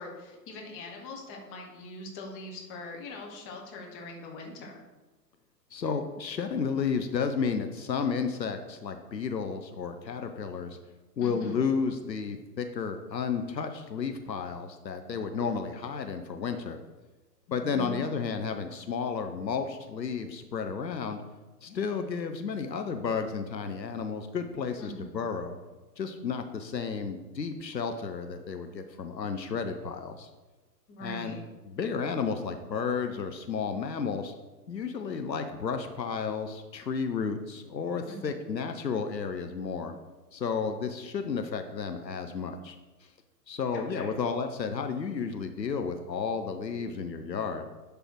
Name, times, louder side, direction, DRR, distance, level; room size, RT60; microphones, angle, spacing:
voice 1, 0.0-4.8 11.2-11.6 17.5-18.1 24.8-25.2 30.9-31.4 38.1-38.4 43.7-44.2, left 1 dB, 25° left, 0 dB, 1.5 m, -42 dB
voice 2, 5.7-10.8 11.2-16.8 17.5-21.2 21.6-25.5 26.0-30.3 31.0-31.4 31.6-34.3 34.7-39.9 40.3-42.8 43.5-47.6, left 5 dB, 85° left, 6 dB, 0.8 m, -32 dB
10.5 x 3.5 x 4.5 m, 1.2 s
figure-of-eight pair, 110°, 49 cm